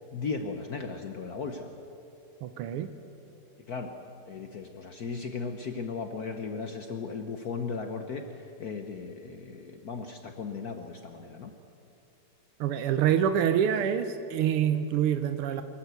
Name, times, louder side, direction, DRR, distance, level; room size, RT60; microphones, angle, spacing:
voice 1, 0.1-1.7 3.7-4.0 4.3-11.5, left 4 dB, 55° left, 6 dB, 1.2 m, -36 dB
voice 2, 2.4-2.9 12.6-15.6, right 9 dB, 90° right, 10 dB, 1.7 m, -26 dB
23.5 x 13.5 x 8.1 m, 2.8 s
omnidirectional pair, 2.4 m